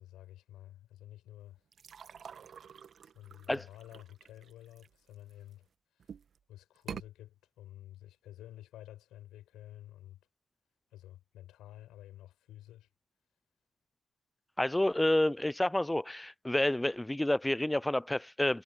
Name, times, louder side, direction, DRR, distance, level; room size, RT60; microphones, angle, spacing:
voice 1, 0.0-1.6 3.1-5.7 6.5-10.2 10.9-12.9, left 13 dB, 80° left, 6.9 m, -51 dB
sound 1, 1.7-5.5 6.0-6.4 6.8-7.1, right 7 dB, 65° right, 1.4 m, -47 dB
voice 2, 14.6-18.6, left 1 dB, 15° left, 0.5 m, -29 dB
hypercardioid pair, 40°, 0 cm